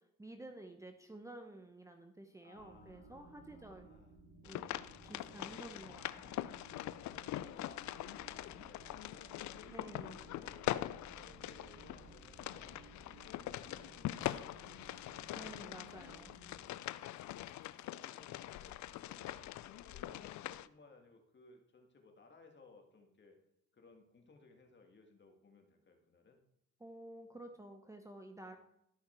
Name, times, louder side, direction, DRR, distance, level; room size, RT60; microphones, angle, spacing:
voice 1, 0.2-3.9 4.4-6.5 9.7-10.2 15.3-16.3 26.8-28.6, right 1 dB, 10° right, 5 dB, 0.8 m, -52 dB
voice 2, 2.4-4.2 6.8-15.5 16.0-16.7 17.2-23.4 23.7-26.4 27.3-27.5 28.5-28.6, left 3 dB, 35° left, 3 dB, 1.9 m, -63 dB
sound 1, 2.5-16.7, right 2 dB, 50° right, 1.9 m, -59 dB
sound 2, 4.5-20.7, left 14 dB, 70° left, 0.4 m, -43 dB
sound 3, 10.3-10.7 11.5-11.6 13.5-13.6 14.2-20.4, left 2 dB, 20° left, 3.5 m, -67 dB
12.5 x 5.8 x 4.4 m, 0.78 s
cardioid pair, 90°, 30 cm